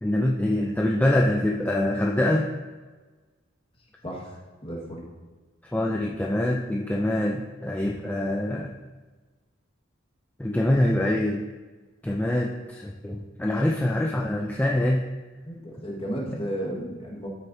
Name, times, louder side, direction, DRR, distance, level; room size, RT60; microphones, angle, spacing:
voice 1, 0.0-2.5 5.6-8.8 10.4-11.4 12.0-15.0, left 1 dB, 10° left, 0 dB, 0.4 m, -24 dB
voice 2, 4.6-5.1 15.4-17.3, equal, 30° left, -2 dB, 1.7 m, -33 dB
13.0 x 6.6 x 2.7 m, 1.3 s
head